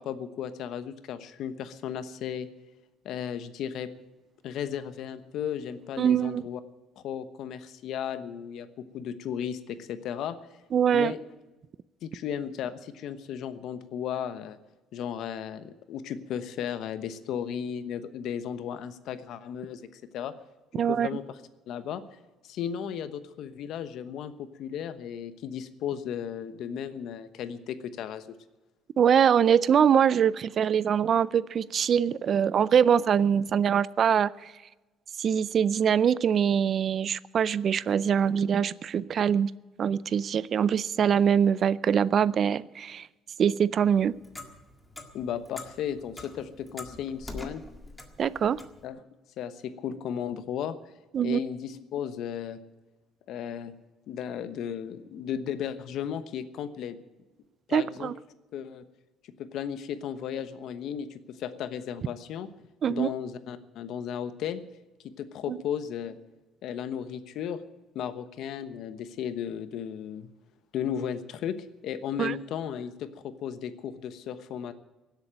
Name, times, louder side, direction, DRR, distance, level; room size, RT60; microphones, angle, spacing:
voice 1, 0.0-2.5 3.0-3.9 4.4-6.6 7.0-8.7 8.9-10.3 10.9-11.2 12.0-14.6 14.9-20.3 20.8-21.4 21.7-22.0 22.4-28.3 45.1-47.6 48.8-49.0 49.4-50.8 51.2-52.6 53.3-53.7 54.1-56.9 57.7-58.1 58.5-58.8 59.4-62.5 62.9-64.6 65.0-66.2 66.6-67.6 67.9-70.3 70.7-71.5 71.8-74.7, left 9 dB, 65° left, 12 dB, 1.1 m, -35 dB
voice 2, 6.0-6.4 10.7-11.1 20.8-21.1 29.0-34.5 35.2-39.5 39.8-43.1 43.4-44.1 48.2-48.6 51.1-51.4 57.7-58.1 62.8-63.1 65.5-65.6 72.2-72.3, right 8 dB, 40° right, 20 dB, 0.4 m, -23 dB
Clock, 43.8-48.8, left 2 dB, 10° left, 1.8 m, -44 dB
17.0 x 8.2 x 8.8 m, 1.1 s
cardioid pair, 135°, 0 cm